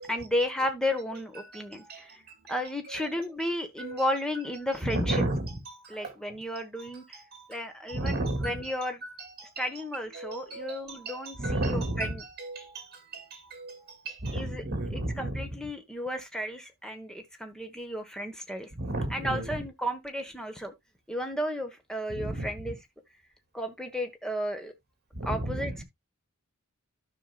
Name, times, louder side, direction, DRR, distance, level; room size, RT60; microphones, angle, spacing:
voice 1, 0.1-2.2 2.5-5.2 5.9-7.2 7.5-9.0 9.6-12.2 14.3-14.7 14.9-18.7 19.1-20.7 21.1-22.8 23.5-24.7 25.2-25.8, left 1 dB, 5° left, 1.2 m, -33 dB
voice 2, 0.6-2.0 2.5-3.1 3.4-3.5 3.8-4.1 4.8-6.1 6.8-7.5 7.9-9.7 10.0-15.5 18.7-19.7 22.1-22.8 25.1-25.8, right 1 dB, 45° right, 2.5 m, -34 dB
13.0 x 5.7 x 2.3 m
head